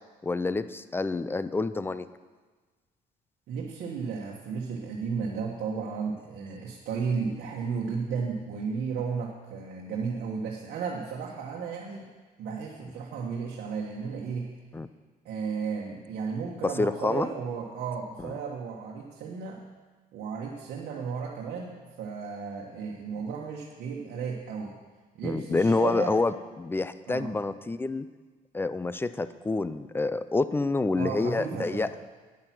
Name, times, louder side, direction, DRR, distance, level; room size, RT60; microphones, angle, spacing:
voice 1, 0.2-2.1 14.7-14.9 16.6-17.3 18.2-18.3 25.2-28.1 28.5-31.9, left 3 dB, 15° left, 14 dB, 0.4 m, -28 dB
voice 2, 3.5-12.1 12.4-14.5 15.2-19.6 20.1-24.7 25.1-26.2 27.1-27.4 30.9-31.9, right 5 dB, 70° right, -2 dB, 1.4 m, -34 dB
9.7 x 8.8 x 6.0 m, 1.4 s
cardioid pair, 110°, 17 cm